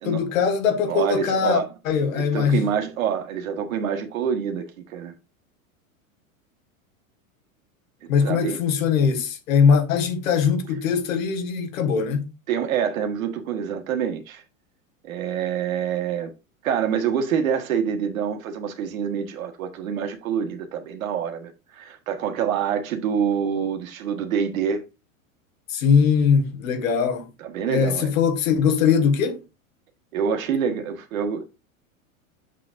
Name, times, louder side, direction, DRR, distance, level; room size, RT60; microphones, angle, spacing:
voice 1, 0.1-2.6 8.1-12.3 25.7-27.3 27.7-29.4, left 6 dB, 70° left, 1.9 m, -21 dB
voice 2, 0.9-1.7 2.1-5.1 8.0-8.6 12.5-14.4 15.0-16.3 16.6-24.8 27.4-28.1 30.1-31.4, right 7 dB, 75° right, 1.7 m, -26 dB
7.4 x 6.2 x 2.6 m
hypercardioid pair, 105°, 42 cm